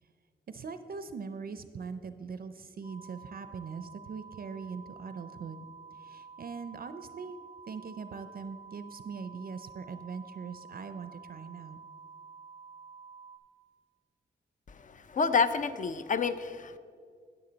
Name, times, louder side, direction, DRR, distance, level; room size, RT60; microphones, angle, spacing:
voice 1, 0.5-5.6 5.9-7.4 7.7-11.8, right 5 dB, 50° right, 10 dB, 0.5 m, -41 dB
sound 1, 2.8-13.4, right 5 dB, 75° left, 1.9 m, -50 dB
voice 2, 14.8-16.8, left 5 dB, 40° left, 12 dB, 0.5 m, -29 dB
9.9 x 9.5 x 3.9 m, 2.2 s
cardioid pair, 90°, 20 cm